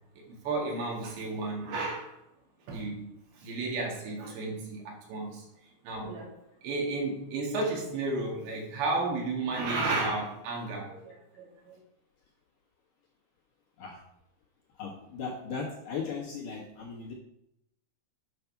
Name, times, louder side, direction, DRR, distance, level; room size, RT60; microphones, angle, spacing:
voice 1, 0.3-2.2 2.7-3.1 3.4-5.5 5.8-6.3 6.6-11.8, right 3 dB, 75° right, -1 dB, 4.1 m, -33 dB
voice 2, 14.8-17.1, left 5 dB, 60° left, -3 dB, 2.5 m, -37 dB
9.5 x 5.2 x 5.9 m, 0.80 s
omnidirectional pair, 5.3 m